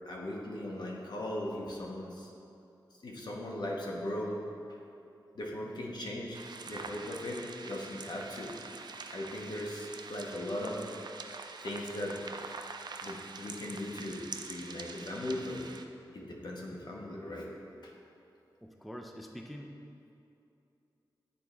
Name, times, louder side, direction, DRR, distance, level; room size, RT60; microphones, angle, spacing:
voice 1, 0.1-2.3 3.0-4.4 5.3-6.4 6.7-8.5 9.1-10.8 11.6-12.2 13.0-15.6 16.1-17.5 17.8-17.9, left 1 dB, 65° left, -2 dB, 1.0 m, -38 dB
sound 1, 6.3-15.8, right 4 dB, 65° right, 0.4 m, -45 dB
voice 2, 18.6-19.7, equal, ahead, 2 dB, 0.4 m, -45 dB
9.4 x 4.4 x 3.3 m, 2.7 s
wide cardioid pair, 115°, 8 cm